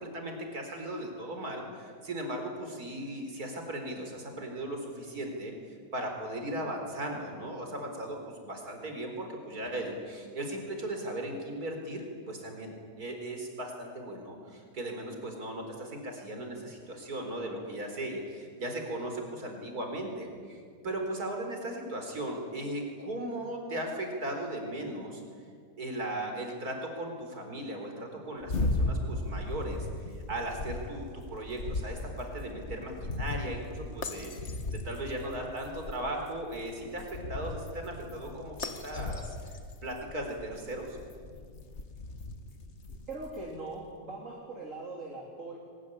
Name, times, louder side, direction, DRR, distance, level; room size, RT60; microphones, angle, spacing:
voice 1, 0.0-25.2 25.8-29.9 30.3-34.3 34.7-41.0, right 1 dB, 70° right, 3 dB, 4.7 m, -37 dB
sound 1, 28.4-43.6, left 2 dB, 45° left, 1.9 m, -37 dB
voice 2, 43.1-45.6, right 2 dB, 55° right, -1 dB, 3.7 m, -41 dB
23.0 x 20.5 x 10.0 m, 2.1 s
omnidirectional pair, 1.7 m